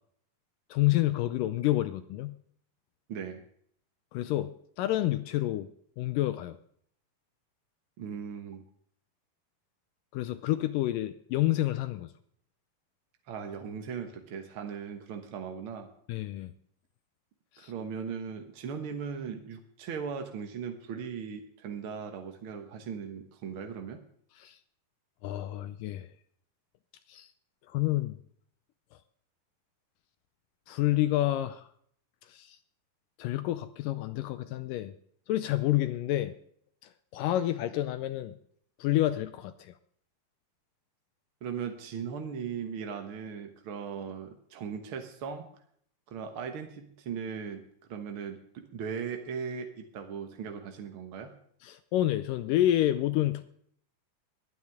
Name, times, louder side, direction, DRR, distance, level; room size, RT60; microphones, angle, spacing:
voice 1, 0.7-2.3 4.1-5.7 6.0-6.6 10.1-12.1 16.1-16.5 17.6-17.7 24.4-24.6 25.2-26.1 27.1-27.3 27.7-28.2 30.7-31.7 32.3-32.6 33.2-34.9 35.3-36.3 37.1-38.4 38.8-39.7 51.6-53.4, left 14 dB, 80° left, 12 dB, 2.1 m, -29 dB
voice 2, 3.1-3.4 8.0-8.6 13.3-15.9 17.6-24.0 41.4-45.5 46.1-47.6 47.9-51.4, right 6 dB, 65° right, 5 dB, 1.3 m, -38 dB
22.0 x 9.3 x 3.5 m, 0.63 s
omnidirectional pair, 4.2 m